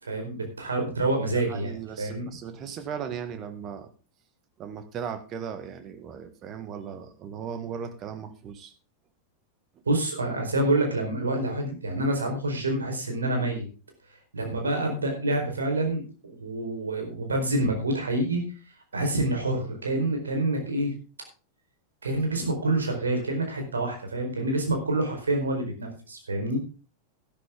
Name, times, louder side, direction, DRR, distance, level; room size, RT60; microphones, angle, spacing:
voice 1, 0.0-2.3 9.9-13.7 14.3-18.4 18.9-20.9 22.0-26.6, right 2 dB, 75° right, 3 dB, 4.4 m, -27 dB
voice 2, 1.3-3.9 4.6-8.7, right 7 dB, 30° right, 9 dB, 1.9 m, -37 dB
12.5 x 12.5 x 3.8 m, 0.34 s
figure-of-eight pair, 90°, 0 cm